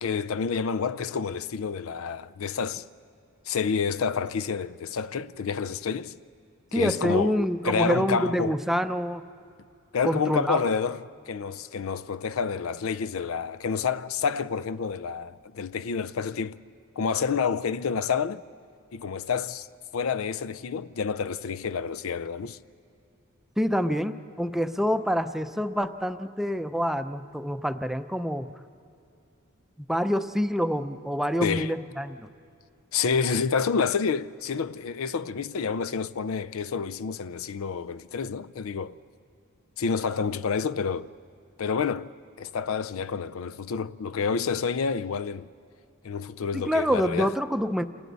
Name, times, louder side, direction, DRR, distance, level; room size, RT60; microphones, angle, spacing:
voice 1, 0.0-2.9 3.5-6.1 6.7-8.5 9.9-16.6 17.0-18.4 18.9-19.7 19.9-22.6 31.4-31.8 32.9-39.0 39.8-41.1 41.6-42.1 42.4-45.5 46.0-47.3, left 5 dB, 80° left, 0.5 m, -29 dB
voice 2, 6.7-9.2 10.0-10.6 23.6-28.5 29.9-32.3 46.5-47.9, equal, ahead, 0.5 m, -26 dB
29.5 x 28.5 x 4.1 m
head